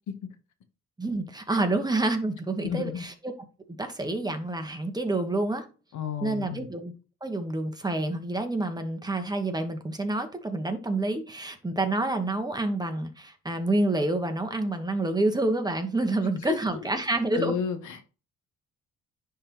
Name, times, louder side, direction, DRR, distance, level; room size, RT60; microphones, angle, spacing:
voice 1, 1.0-3.3 3.7-5.6 6.2-6.9 7.2-17.6, right 2 dB, 15° right, 1.1 m, -28 dB
voice 2, 2.6-3.0 5.9-6.7 16.4-16.6 17.3-18.1, left 7 dB, 75° left, 1.0 m, -31 dB
10.5 x 3.6 x 2.9 m
cardioid pair, 90°, 30 cm